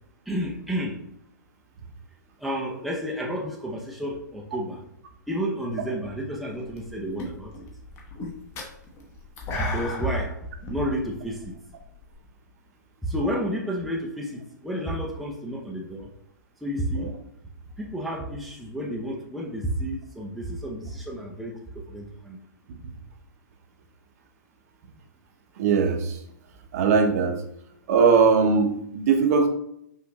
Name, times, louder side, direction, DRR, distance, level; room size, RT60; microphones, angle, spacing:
voice 1, 0.3-1.0 2.4-4.8 5.3-7.7 9.6-10.4 10.7-11.5 13.0-16.1 16.6-17.2 17.8-22.4, equal, ahead, -3 dB, 0.5 m, -31 dB
sound 1, 6.5-6.9 7.2-12.1, left 2 dB, 25° left, 0.9 m, -36 dB
voice 2, 25.6-26.2 26.7-27.4 27.9-29.5, right 5 dB, 50° right, 4 dB, 0.8 m, -20 dB
5.6 x 2.5 x 3.0 m, 0.76 s
hypercardioid pair, 135°, 10 cm